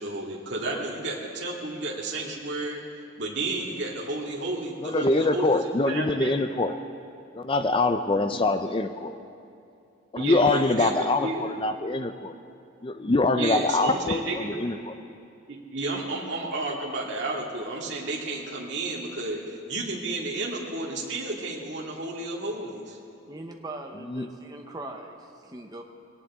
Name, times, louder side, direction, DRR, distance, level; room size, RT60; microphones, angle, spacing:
voice 1, 0.0-2.8 3.2-6.4 8.3-8.4 10.1-11.5 13.3-14.5 15.5-23.0, right 2 dB, 60° right, -3 dB, 2.2 m, -32 dB
voice 2, 4.8-6.7 7.4-9.1 10.1-12.3 12.8-14.9 24.1-24.3, left 2 dB, 25° left, 9 dB, 0.5 m, -24 dB
voice 3, 23.3-25.8, right 2 dB, 20° right, 2 dB, 0.9 m, -40 dB
21.5 x 18.0 x 3.7 m, 2.5 s
head